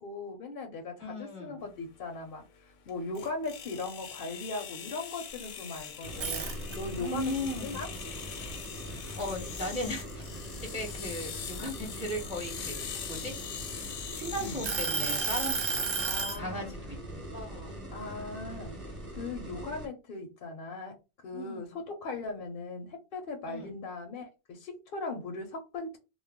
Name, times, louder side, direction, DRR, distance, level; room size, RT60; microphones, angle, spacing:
voice 1, 0.0-2.4 2.9-7.3 7.6-7.9 14.4-14.6 16.0-16.7 17.9-20.9 21.2-26.0, left 3 dB, 60° left, 4 dB, 0.7 m, -39 dB
voice 2, 1.0-1.7 7.0-7.8 8.9-10.2 10.6-13.3 14.1-16.0 16.4-17.7 21.3-21.6 23.5-23.7, equal, 10° right, 1 dB, 0.5 m, -37 dB
sound 1, 1.7-16.4, left 7 dB, 90° left, 0.9 m, -43 dB
sound 2, 6.0-19.9, right 1 dB, 30° right, 0.8 m, -42 dB
sound 3, 6.1-7.1 7.5-9.3 9.8-10.0 10.4-12.3 13.0-14.1 14.6-16.4, right 5 dB, 70° right, 0.8 m, -32 dB
2.3 x 2.1 x 3.4 m, 0.28 s
omnidirectional pair, 1.2 m